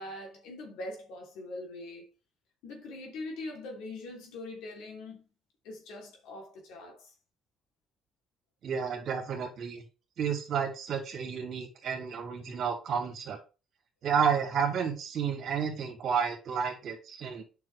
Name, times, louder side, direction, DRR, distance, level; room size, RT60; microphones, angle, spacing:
voice 1, 0.0-2.1 2.6-5.2 5.6-7.1, left 2 dB, 85° left, 3.0 m, -42 dB
voice 2, 8.6-9.8 10.2-13.4 14.0-17.4, right 7 dB, 60° right, 2.6 m, -31 dB
8.7 x 6.1 x 3.3 m
cardioid pair, 90°, 0 cm